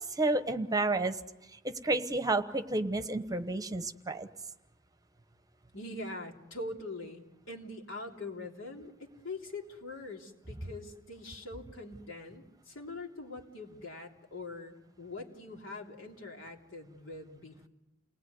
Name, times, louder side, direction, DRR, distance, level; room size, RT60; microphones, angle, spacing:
voice 1, 0.1-1.2 1.5-4.3, right 2 dB, 20° right, 10 dB, 1.1 m, -31 dB
voice 2, 5.7-17.7, left 2 dB, 70° left, 1 dB, 3.4 m, -43 dB
29.0 x 20.0 x 9.5 m, 1.0 s
head